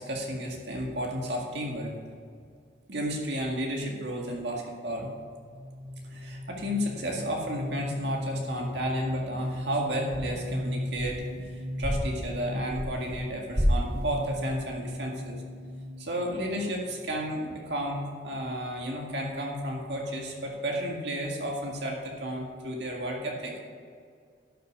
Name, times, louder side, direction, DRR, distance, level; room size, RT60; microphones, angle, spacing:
voice 1, 0.0-2.0 2.9-5.1 6.0-15.4 16.0-23.6, equal, 60° right, -1 dB, 1.9 m, -32 dB
sound 1, 5.2-17.6, left 1 dB, 80° right, 1.9 m, -38 dB
sound 2, 9.4-9.7 10.1-11.5 11.8-13.2 13.5-14.5, equal, 25° right, 2.8 m, -31 dB
12.0 x 6.9 x 6.2 m, 2.1 s
head